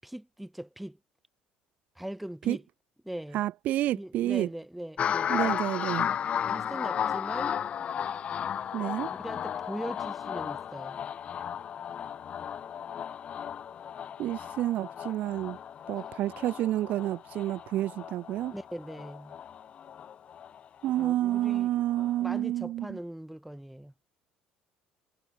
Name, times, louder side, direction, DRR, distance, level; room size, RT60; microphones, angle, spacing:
voice 1, 0.0-1.0 1.9-2.6 3.0-3.4 3.9-5.7 6.5-7.6 9.2-11.0 18.5-19.4 21.0-21.9 22.2-23.9, right 1 dB, 5° right, 5.2 m, -40 dB
voice 2, 3.3-4.5 5.3-6.1 8.7-9.1 14.2-15.6 15.9-18.5 20.8-22.9, right 14 dB, 55° right, 0.8 m, -29 dB
sound 1, 5.0-21.6 22.0-22.4, left 8 dB, 40° left, 1.9 m, -34 dB
cardioid pair, 125°, 3 cm